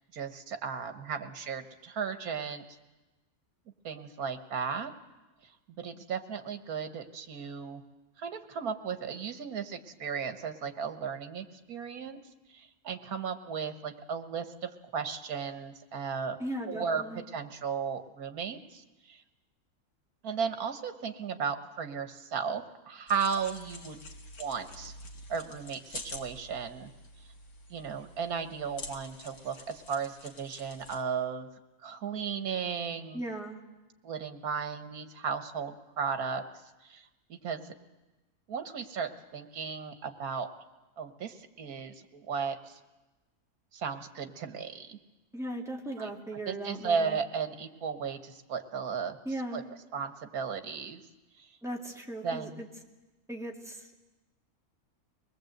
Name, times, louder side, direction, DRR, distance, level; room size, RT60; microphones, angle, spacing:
voice 1, 0.1-2.6 3.8-4.9 5.8-7.8 8.2-12.2 12.5-16.4 16.7-19.2 20.2-24.0 24.4-24.9 25.3-26.9 27.7-31.5 31.8-33.2 34.0-36.4 36.9-37.7 38.5-40.5 41.0-42.8 43.7-45.0 46.0-46.1 46.5-49.2 49.5-49.6 49.9-51.0 51.4-51.5 52.2-52.6, right 6 dB, 80° right, 8 dB, 1.7 m, -35 dB
voice 2, 16.4-17.2 33.1-33.6 45.3-47.2 49.2-49.6 51.6-52.7 53.3-53.9, right 1 dB, ahead, 0 dB, 2.2 m, -37 dB
sound 1, 23.1-31.0, left 2 dB, 85° left, 2.3 m, -47 dB
24.0 x 20.5 x 7.9 m, 1.1 s
omnidirectional pair, 1.5 m